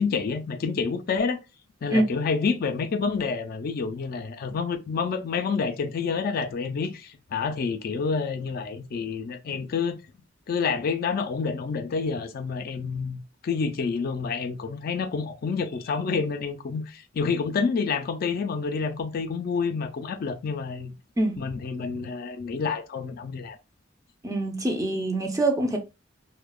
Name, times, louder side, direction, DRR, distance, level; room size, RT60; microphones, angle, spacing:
voice 1, 0.0-1.4 1.8-10.0 10.5-20.9 21.4-23.6, left 5 dB, 50° left, 0.3 m, -28 dB
voice 2, 24.2-25.8, right 1 dB, 15° right, 0.4 m, -24 dB
2.7 x 2.1 x 2.2 m
head